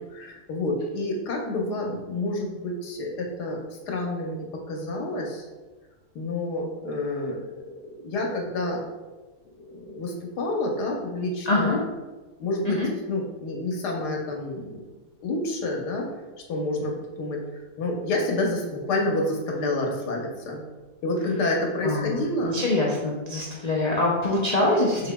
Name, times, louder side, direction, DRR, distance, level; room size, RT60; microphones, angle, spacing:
voice 1, 0.1-3.6 3.9-5.5 6.1-7.5 8.0-8.8 9.6-11.8 12.4-12.8 13.1-14.8 15.2-16.1 16.5-17.4 17.8-20.6 21.0-22.6, left 2 dB, 90° left, 0 dB, 1.5 m, -28 dB
voice 2, 11.5-11.8 12.6-12.9 21.8-25.1, left 2 dB, 70° left, -4 dB, 0.4 m, -24 dB
6.0 x 3.8 x 2.2 m, 1.2 s
omnidirectional pair, 1.7 m